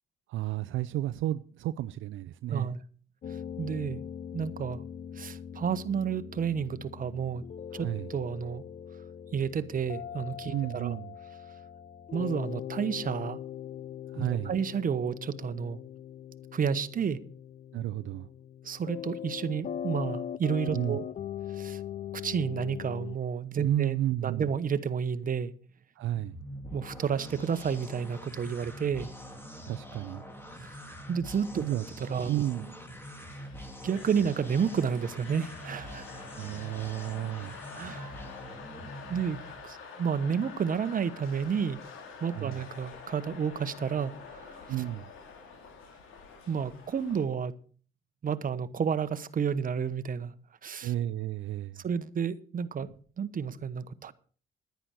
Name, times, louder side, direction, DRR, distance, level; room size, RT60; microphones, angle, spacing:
voice 1, 0.3-2.7 7.7-8.1 10.5-11.1 14.1-14.6 17.7-18.3 20.7-21.0 23.6-24.5 26.0-26.4 29.7-30.2 31.6-31.8 32.3-32.8 36.4-37.5 42.3-42.6 44.7-45.0 50.8-51.8, right 13 dB, 80° right, 0.5 m, -32 dB
voice 2, 2.5-2.8 3.6-4.0 4.3-4.8 5.1-7.5 7.7-8.6 9.3-11.0 12.1-13.4 14.1-15.8 16.5-17.2 18.6-21.1 21.5-21.8 22.1-24.0 24.2-25.5 26.7-29.1 30.6-31.6 32.0-32.3 33.8-36.3 37.7-38.1 39.1-41.8 42.2-44.6 46.5-47.6 48.2-50.4 50.6-50.9 51.8-54.1, right 7 dB, 45° right, 1.1 m, -31 dB
sound 1, 3.2-23.2, left 9 dB, 40° left, 0.5 m, -41 dB
sound 2, 26.0-39.8, equal, 10° left, 2.6 m, -45 dB
sound 3, 33.0-47.2, left 5 dB, 85° left, 2.7 m, -48 dB
10.5 x 10.0 x 6.3 m
cardioid pair, 90°, 20 cm